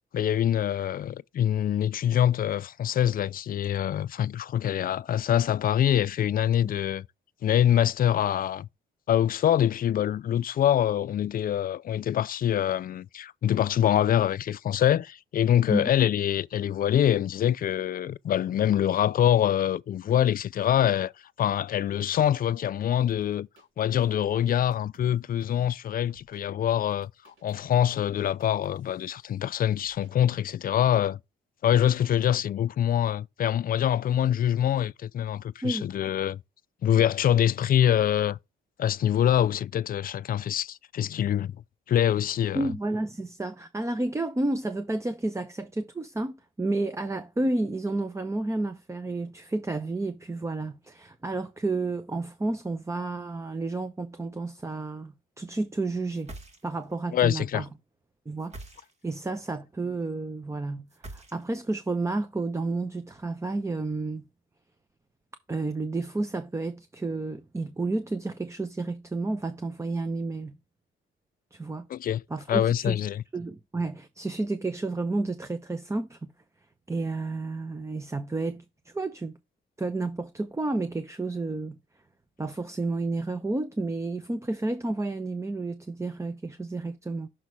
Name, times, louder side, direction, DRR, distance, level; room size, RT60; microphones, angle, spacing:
voice 1, 0.1-7.1 7.4-8.7 9.1-21.1 21.4-23.5 23.8-31.2 31.6-36.4 36.8-38.4 38.8-41.5 41.9-42.7 57.1-57.7 71.9-72.2 72.5-73.2, left 10 dB, 45° left, 0.4 m, -25 dB
sound 1, 23.1-23.7 24.0-25.5 26.1-26.4 26.9-29.5 29.8-30.1, right 2 dB, 80° right, 3.6 m, -59 dB
voice 2, 42.5-56.3 56.6-57.7 58.3-58.5 59.0-64.2 65.5-70.6 71.5-71.9 72.3-73.0 73.3-76.3 76.9-79.4 79.8-81.8 82.4-87.3, right 2 dB, 15° right, 0.8 m, -31 dB
sound 2, 56.1-57.0 58.4-59.2 60.9-61.7, right 2 dB, 35° right, 1.9 m, -44 dB
6.4 x 4.0 x 4.6 m
cardioid pair, 90°, 20 cm